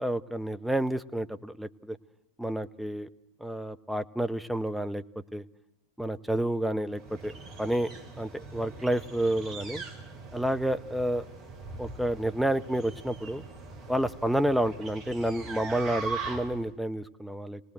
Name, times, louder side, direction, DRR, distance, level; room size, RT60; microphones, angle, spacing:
voice 1, 0.0-2.0 2.4-3.1 3.4-5.0 5.3-5.4 6.0-7.3 7.6-7.9 8.2-9.8 10.3-11.3 11.8-13.4 13.9-17.6, right 1 dB, ahead, 8 dB, 0.8 m, -29 dB
sound 1, 6.9-16.7, right 4 dB, 35° right, 2.9 m, -41 dB
25.5 x 18.5 x 9.1 m, 0.87 s
figure-of-eight pair, 90°, 0 cm